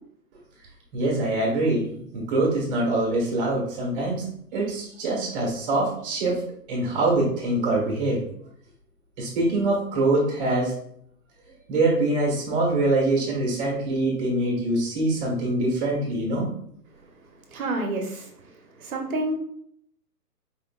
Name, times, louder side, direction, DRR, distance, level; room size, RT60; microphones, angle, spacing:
voice 1, 0.9-6.4 6.7-8.2 9.2-10.7 11.7-16.5, right 2 dB, 30° right, -3 dB, 1.4 m, -24 dB
voice 2, 17.5-19.3, right 2 dB, 60° right, 2 dB, 1.2 m, -29 dB
4.6 x 4.0 x 2.4 m, 0.67 s
hypercardioid pair, 145°, 48 cm